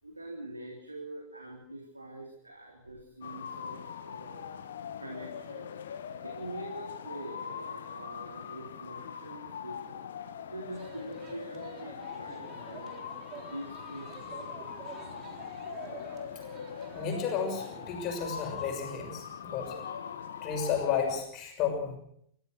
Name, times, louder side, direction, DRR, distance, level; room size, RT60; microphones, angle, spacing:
voice 1, 0.0-4.5 5.0-5.7 6.2-13.0 13.3-15.1, right 1 dB, 85° right, 0 dB, 3.6 m, -44 dB
sound 1, 3.2-21.2, left 8 dB, 65° left, 1.5 m, -42 dB
sound 2, 10.7-18.7, right 6 dB, 35° right, 3.8 m, -49 dB
voice 2, 16.9-19.8 20.4-22.0, left 7 dB, 35° left, 3 dB, 6.4 m, -32 dB
29.5 x 15.0 x 6.4 m, 0.70 s
figure-of-eight pair, 90°, 0 cm